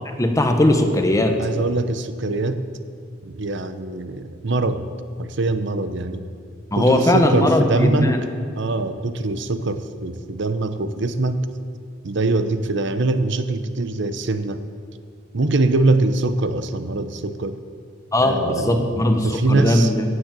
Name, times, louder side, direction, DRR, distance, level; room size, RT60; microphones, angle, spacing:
voice 1, 0.1-1.4 6.7-8.2 18.1-20.0, left 1 dB, 15° left, 5 dB, 1.1 m, -19 dB
voice 2, 1.4-2.6 3.2-4.9 5.2-6.3 6.8-8.2 8.6-11.4 12.0-14.6 15.3-17.6 18.2-19.9, right 2 dB, 65° right, 11 dB, 0.8 m, -23 dB
16.5 x 7.8 x 7.5 m, 2.2 s
head